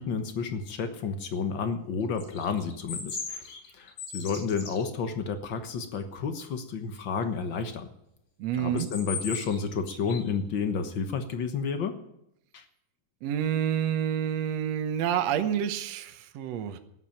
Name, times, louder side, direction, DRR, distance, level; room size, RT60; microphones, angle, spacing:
voice 1, 0.0-7.9 8.5-12.0 12.5-12.6, left 5 dB, 60° left, 8 dB, 1.2 m, -31 dB
sound 1, 2.2-4.9 8.6-9.6 9.9-10.3, left 5 dB, 85° left, 4.8 m, -37 dB
voice 2, 8.4-8.9 13.2-16.8, right 9 dB, 65° right, 7 dB, 1.9 m, -28 dB
14.0 x 10.0 x 8.8 m, 0.78 s
omnidirectional pair, 3.8 m